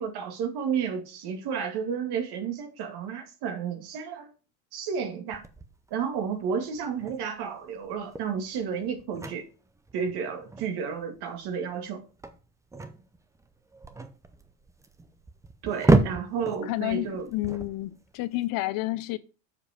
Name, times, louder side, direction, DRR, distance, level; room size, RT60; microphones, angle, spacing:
voice 1, 0.0-4.3 4.7-5.4 5.9-9.4 9.9-12.0 15.6-17.3, right 7 dB, 55° right, 2.2 m, -32 dB
sound 1, 5.3-18.4, right 3 dB, 5° right, 0.5 m, -31 dB
voice 2, 16.6-19.2, left 17 dB, 50° left, 0.5 m, -30 dB
6.9 x 5.2 x 5.0 m
supercardioid pair, 130°, 46 cm